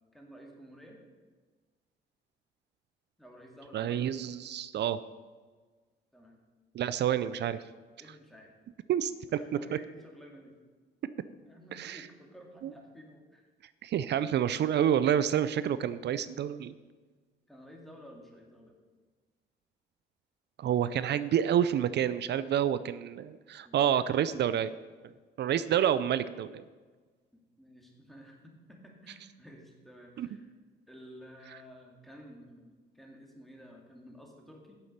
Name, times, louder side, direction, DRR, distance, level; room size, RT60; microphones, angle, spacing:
voice 1, 0.1-1.0 3.2-4.2 6.1-6.4 8.0-8.5 9.2-10.5 11.4-13.4 17.5-18.7 23.6-24.1 27.3-30.5 30.9-34.8, equal, ahead, 0 dB, 2.3 m, -52 dB
voice 2, 3.7-5.0 6.7-7.6 8.9-9.4 11.7-12.0 12.6-12.7 13.8-16.7 20.6-24.7 25.4-26.6 30.2-30.3, right 10 dB, 60° right, 15 dB, 0.4 m, -28 dB
8.6 x 7.2 x 6.6 m, 1.4 s
cardioid pair, 90°, 20 cm